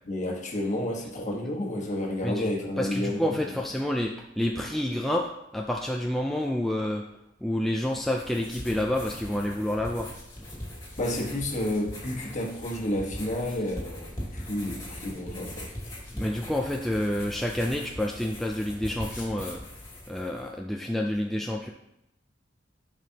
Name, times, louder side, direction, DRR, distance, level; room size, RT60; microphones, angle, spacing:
voice 1, 0.0-3.2 11.0-15.7, left 1 dB, 40° left, 0 dB, 1.4 m, -30 dB
voice 2, 2.8-7.0 7.4-10.1 16.1-19.6 20.1-21.7, left 1 dB, ahead, 0 dB, 0.4 m, -29 dB
sound 1, 7.8-20.5, left 1 dB, 20° left, 2.6 m, -40 dB
11.0 x 5.2 x 2.9 m, 0.84 s
head